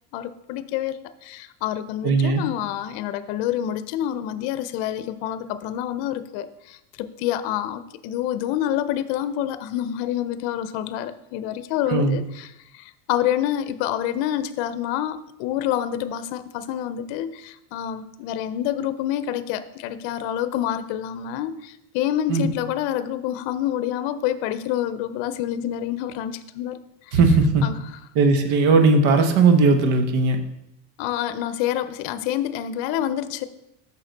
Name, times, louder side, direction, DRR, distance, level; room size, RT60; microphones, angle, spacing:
voice 1, 0.1-26.8 27.1-27.2 27.6-27.8 31.0-33.4, left 11 dB, 60° left, 12 dB, 0.6 m, -27 dB
voice 2, 2.0-2.4 11.9-12.2 22.3-22.5 27.1-27.7 28.1-30.4, right 3 dB, 65° right, 6 dB, 1.2 m, -17 dB
6.3 x 5.7 x 4.0 m, 0.82 s
supercardioid pair, 125°, 50 cm